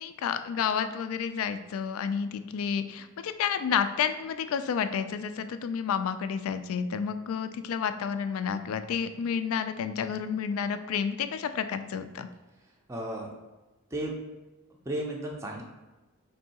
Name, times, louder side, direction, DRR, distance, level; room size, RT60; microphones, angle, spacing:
voice 1, 0.0-12.3, left 7 dB, 70° left, 11 dB, 0.3 m, -30 dB
voice 2, 12.9-13.3 13.9-14.1 14.9-15.6, right 1 dB, 15° right, -1 dB, 0.4 m, -33 dB
3.6 x 2.7 x 4.1 m, 1.1 s
head